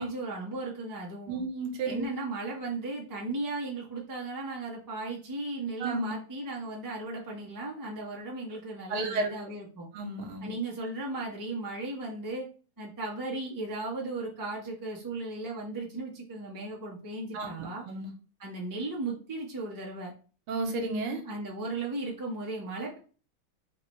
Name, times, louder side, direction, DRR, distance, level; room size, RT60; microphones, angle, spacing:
voice 1, 0.0-1.4 1.8-9.9 10.4-12.5 12.8-17.9 18.4-20.1 21.2-23.0, right 2 dB, 20° right, -3 dB, 0.5 m, -36 dB
voice 2, 1.3-2.1 5.8-6.1 8.9-9.3 9.9-10.5 17.3-18.1 20.5-21.2, right 3 dB, 75° right, 3 dB, 1.7 m, -32 dB
3.7 x 3.5 x 3.1 m, 0.38 s
omnidirectional pair, 2.4 m